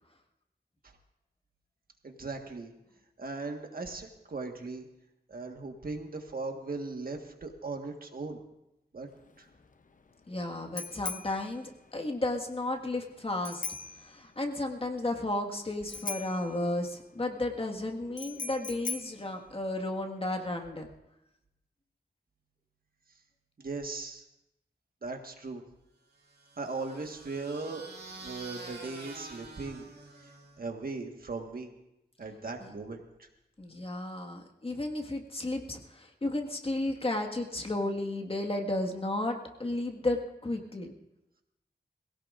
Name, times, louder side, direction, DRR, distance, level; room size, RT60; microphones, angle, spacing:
voice 1, 2.0-2.7 3.2-4.9 5.3-8.4 8.9-9.1 9.4-9.5 23.6-24.2 25.0-25.6 26.6-27.8 28.2-29.9 30.6-31.7 32.2-33.3, right 3 dB, 60° right, 3 dB, 1.5 m, -38 dB
Bicycle bell, 9.1-20.2, left 5 dB, 50° left, 0.7 m, -42 dB
voice 2, 10.3-13.6 13.9-20.9 32.6-32.7 33.6-40.9, left 2 dB, 35° left, 2 dB, 1.7 m, -33 dB
sound 1, 26.2-30.7, right 3 dB, 80° right, 2.3 m, -47 dB
22.5 x 16.5 x 2.5 m, 0.88 s
wide cardioid pair, 100°, 17 cm